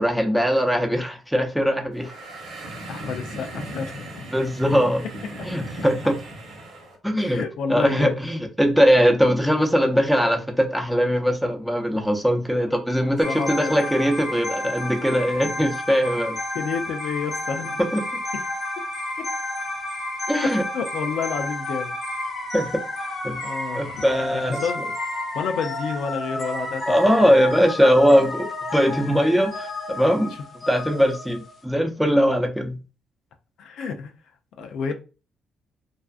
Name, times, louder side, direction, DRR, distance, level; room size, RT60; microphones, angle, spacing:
voice 1, 0.0-2.1 4.3-5.0 5.4-6.2 7.0-7.4 7.7-16.4 17.8-18.0 20.3-20.6 22.5-22.8 23.2-23.4 23.7-24.6 26.9-28.5 28.7-30.3 30.7-32.8, equal, ahead, 0.6 m, -20 dB
sound 1, 1.9-7.0, right 1 dB, 85° right, 1.0 m, -37 dB
voice 2, 2.9-4.3 5.4-5.5 7.2-8.2 13.0-13.9 16.5-17.8 18.3-18.4 19.2-19.3 20.4-22.0 23.4-24.8 25.3-27.0 27.2-27.4 33.6-34.1 34.6-34.9, left 5 dB, 80° left, 0.4 m, -30 dB
sound 2, 13.2-31.6, left 1 dB, 45° left, 0.7 m, -31 dB
2.4 x 2.4 x 2.3 m
cardioid pair, 90°, 0 cm